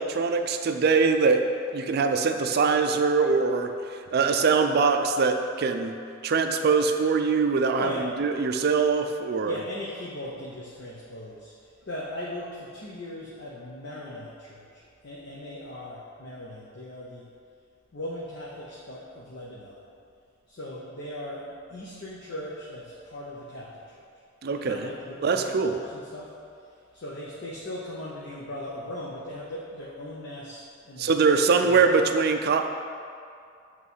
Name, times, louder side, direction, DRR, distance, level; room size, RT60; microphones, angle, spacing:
voice 1, 0.0-1.5 1.7-6.0 6.2-7.9 8.2-9.5 24.4-24.9 25.2-25.7 31.0-32.7, right 4 dB, 50° right, 6 dB, 0.4 m, -23 dB
voice 2, 7.7-8.1 9.4-17.3 17.9-19.8 20.5-24.0 24.5-26.3 26.9-31.9, left 1 dB, 60° left, -4 dB, 0.7 m, -39 dB
8.1 x 3.1 x 5.4 m, 2.4 s
head